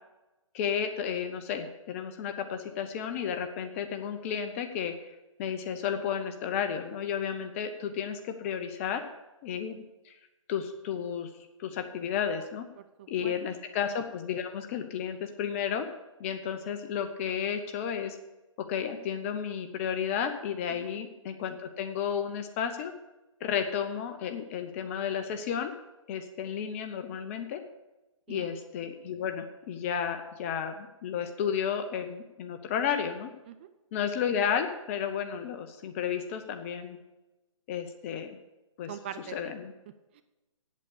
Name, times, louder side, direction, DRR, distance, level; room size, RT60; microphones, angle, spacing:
voice 1, 0.5-5.1 5.4-9.0 9.4-10.2 10.5-11.3 11.6-12.6 13.1-15.9 16.2-18.2 18.7-22.9 23.4-25.7 26.1-27.6 28.3-33.3 33.9-37.0 37.7-38.3 38.8-38.9 39.3-39.7, left 8 dB, 25° left, 7 dB, 0.7 m, -32 dB
voice 2, 12.8-13.3 20.7-20.9 28.3-28.5 33.5-33.7 38.9-39.6 40.1-40.2, right 10 dB, 20° right, 10 dB, 0.4 m, -43 dB
8.3 x 8.2 x 8.4 m, 1.0 s
figure-of-eight pair, 145°, 17 cm